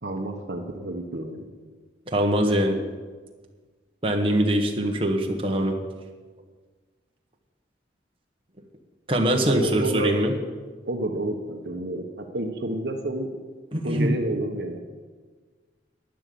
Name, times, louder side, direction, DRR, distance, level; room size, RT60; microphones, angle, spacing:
voice 1, 0.0-1.4 9.5-10.2 10.9-13.3 13.8-14.8, right 1 dB, 60° right, 3 dB, 1.2 m, -30 dB
voice 2, 2.1-2.8 4.0-5.7 9.1-10.3 13.7-14.1, right 1 dB, 30° right, 1 dB, 1.5 m, -22 dB
11.5 x 10.5 x 7.0 m, 1.4 s
head